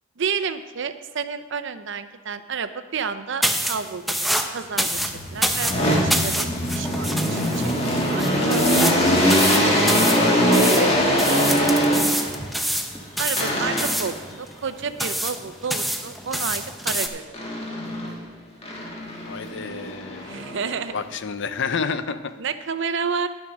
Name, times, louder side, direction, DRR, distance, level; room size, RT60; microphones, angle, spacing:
voice 1, 0.2-9.0 9.5-10.2 10.5-11.1 11.6-11.9 13.2-17.4 20.2-20.9 22.4-23.3, right 6 dB, 65° right, 11 dB, 0.6 m, -31 dB
sound 1, 3.4-17.1, equal, ahead, 0.6 m, -27 dB
sound 2, 4.8-12.5 13.4-14.2 17.3-18.2 18.6-21.0, equal, 30° left, 1.8 m, -22 dB
voice 2, 10.2-10.6 19.2-20.4 20.9-22.3, left 5 dB, 65° left, 11 dB, 0.6 m, -29 dB
10.5 x 7.2 x 6.1 m, 1.3 s
head